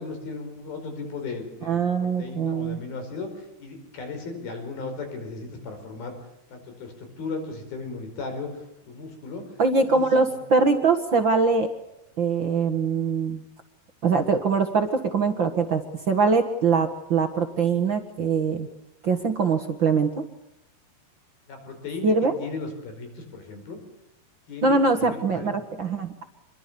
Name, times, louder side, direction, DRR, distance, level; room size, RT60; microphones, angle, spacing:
voice 1, 0.0-6.1 6.5-9.6 9.9-10.1 21.5-23.8 24.5-25.5, left 4 dB, 65° left, 6 dB, 6.7 m, -36 dB
voice 2, 1.6-2.8 9.6-11.7 12.2-13.4 14.0-18.7 19.0-20.2 22.0-22.3 24.6-26.2, right 4 dB, 55° right, 6 dB, 1.3 m, -23 dB
27.0 x 22.5 x 7.0 m, 0.84 s
omnidirectional pair, 4.6 m